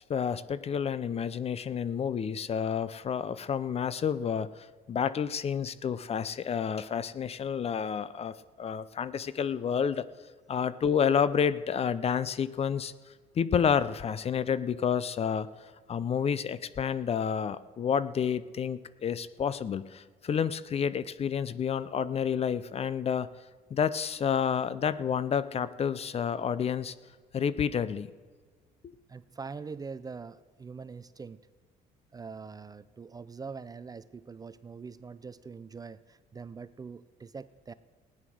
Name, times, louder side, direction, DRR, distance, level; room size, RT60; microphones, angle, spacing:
voice 1, 0.1-10.1 10.5-12.9 13.4-15.5 15.9-23.3 23.7-26.9 27.3-28.1 28.8-28.9, left 7 dB, 35° left, 16 dB, 0.6 m, -29 dB
voice 2, 29.1-31.5 32.1-37.7, right 5 dB, 20° right, 15 dB, 0.4 m, -43 dB
16.0 x 9.7 x 6.3 m, 1.5 s
cardioid pair, 110°, 17 cm